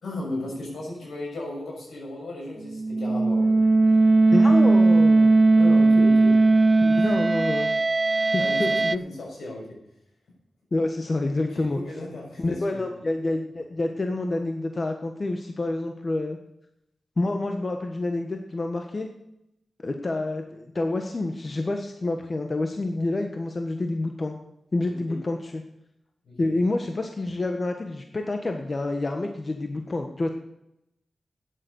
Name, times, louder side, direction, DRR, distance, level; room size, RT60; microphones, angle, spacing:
voice 1, 0.0-3.6 5.6-6.3 6.9-7.1 8.4-9.7 11.5-12.8 24.9-25.2 26.2-26.5, left 1 dB, 90° left, -2 dB, 6.2 m, -35 dB
sound 1, 2.7-9.0, right 3 dB, 45° right, 0.4 m, -18 dB
voice 2, 4.3-5.3 6.8-7.7 8.3-9.0 10.7-11.8 12.4-16.4 17.2-19.1 19.8-24.3 24.7-25.6 26.4-30.3, left 2 dB, 45° left, 4 dB, 1.4 m, -28 dB
9.9 x 8.5 x 8.0 m, 0.82 s
cardioid pair, 60°, 0 cm